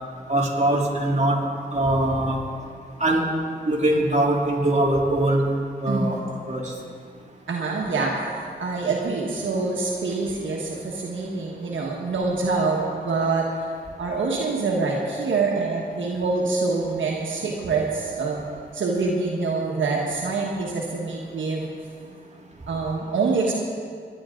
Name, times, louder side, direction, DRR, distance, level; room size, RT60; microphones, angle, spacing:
voice 1, 0.3-1.4 1.7-2.4 3.0-3.3 3.7-5.4 5.8-6.2 6.5-6.7, right 1 dB, 40° right, -3 dB, 3.2 m, -22 dB
voice 2, 7.5-13.5 14.0-18.4 18.7-21.6 22.7-23.5, right 3 dB, 90° right, -2 dB, 1.4 m, -25 dB
22.0 x 10.5 x 3.8 m, 2.1 s
cardioid pair, 45°, 19 cm